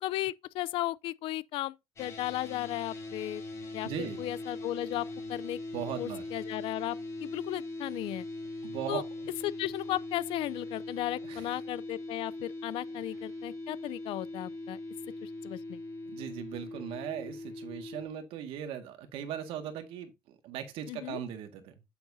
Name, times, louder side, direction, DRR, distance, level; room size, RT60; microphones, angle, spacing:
voice 1, 0.0-3.4 3.7-5.6 6.0-8.3 8.9-9.0 9.4-14.8 15.2-15.8 20.9-21.2, left 15 dB, 75° left, 0.4 m, -35 dB
sound 1, 2.0-18.1, left 2 dB, 30° left, 4.6 m, -41 dB
voice 2, 3.8-4.2 5.7-6.2 8.6-9.0 11.2-11.5 16.1-21.7, right 9 dB, 85° right, 1.7 m, -39 dB
8.9 x 7.9 x 2.6 m
cardioid pair, 135°, 9 cm